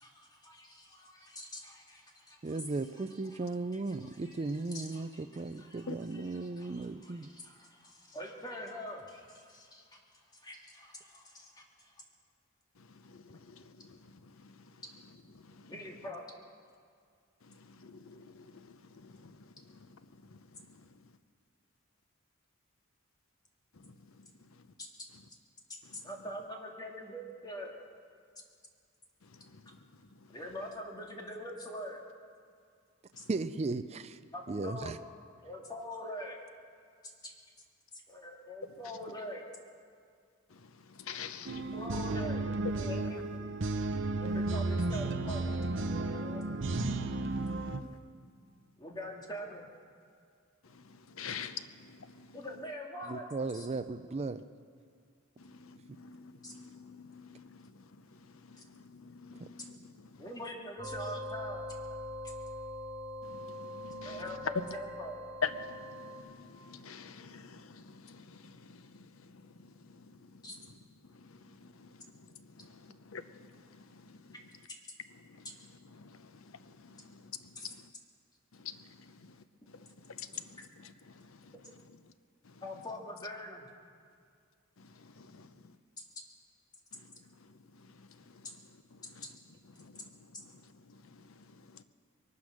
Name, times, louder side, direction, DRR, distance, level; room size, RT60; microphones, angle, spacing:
voice 1, 0.0-3.4 3.7-12.0 15.7-16.3 24.8-24.9 25.9-27.8 30.3-32.0 33.2-33.3 34.3-35.0 35.4-36.4 37.0-37.3 38.1-39.4 41.6-42.5 42.7-43.2 44.2-45.6 45.9-46.4 48.8-49.7 52.3-53.3 53.5-53.7 54.0-54.2 56.4-56.5 60.2-61.7 64.0-65.2 70.4-70.6 77.6-77.7 82.6-83.7 86.0-86.1, equal, 20° left, 2.1 m, -44 dB
voice 2, 2.4-7.3 33.3-34.2 34.5-35.0 53.1-54.4, right 3 dB, 30° right, 0.4 m, -36 dB
voice 3, 13.0-14.0 14.4-14.5 15.5-15.7 17.5-19.4 20.3-20.4 23.8-23.9 41.0-41.6 50.7-52.3 55.4-57.7 58.5-59.9 63.3-64.2 64.5-64.6 65.4-70.1 71.2-71.9 72.6-74.2 75.4-75.5 76.0-77.3 78.6-78.8 79.2-79.3 80.1-80.6 81.2-81.4 85.0-85.5 88.0-88.1 89.2-89.3 89.8-90.0 91.1-91.2 91.7-91.8, left 6 dB, 80° left, 0.7 m, -45 dB
sound 1, 41.5-47.8, right 2 dB, 60° right, 0.7 m, -33 dB
sound 2, 60.8-66.2, left 1 dB, 40° left, 4.9 m, -42 dB
22.5 x 9.6 x 6.4 m
head